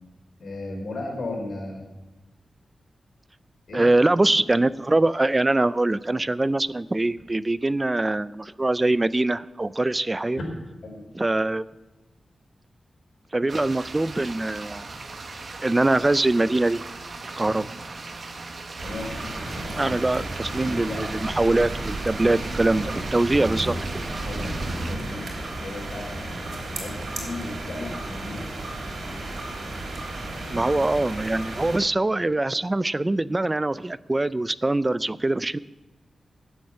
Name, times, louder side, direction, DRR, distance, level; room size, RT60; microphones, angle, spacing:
voice 1, 0.4-1.8 3.7-3.8 10.4-10.5 10.8-11.0 18.8-19.1 19.4-20.0 20.6-21.1 24.2-25.3 25.6-28.4 30.4-30.6, left 2 dB, 65° left, 1 dB, 3.9 m, -36 dB
voice 2, 3.7-10.4 11.1-11.6 13.3-14.9 15.6-16.8 17.4-17.7 19.8-23.9 30.5-35.6, right 2 dB, 20° right, 17 dB, 0.3 m, -23 dB
sound 1, 13.5-25.0, right 3 dB, 40° right, 1.1 m, -39 dB
sound 2, 18.8-31.8, right 2 dB, 60° right, 3.6 m, -33 dB
12.0 x 7.9 x 8.6 m, 1.1 s
wide cardioid pair, 170°, 0 cm